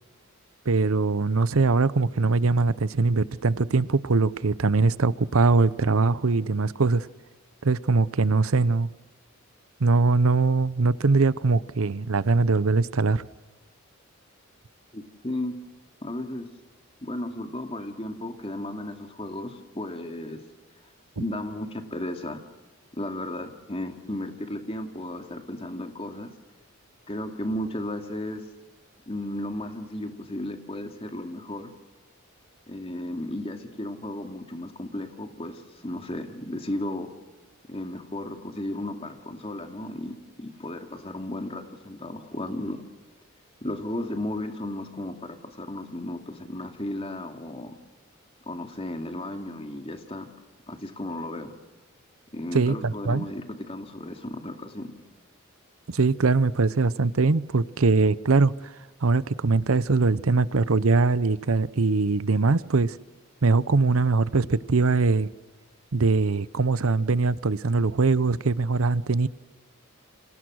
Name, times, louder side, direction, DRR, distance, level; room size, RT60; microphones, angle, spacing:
voice 1, 0.7-7.1 7.6-8.9 9.8-13.3 52.5-53.3 55.9-58.7 59.0-63.0 63.4-65.3 65.9-69.3, right 3 dB, 80° right, 17 dB, 0.7 m, -22 dB
voice 2, 14.9-15.5 16.0-16.5 17.0-20.4 21.2-22.4 22.9-26.3 27.1-28.5 29.1-31.7 32.7-37.1 37.7-42.8 43.6-47.7 48.5-50.3 50.7-51.5 52.3-54.9, left 1 dB, 25° left, 5 dB, 2.5 m, -34 dB
30.0 x 27.5 x 6.4 m, 1.3 s
head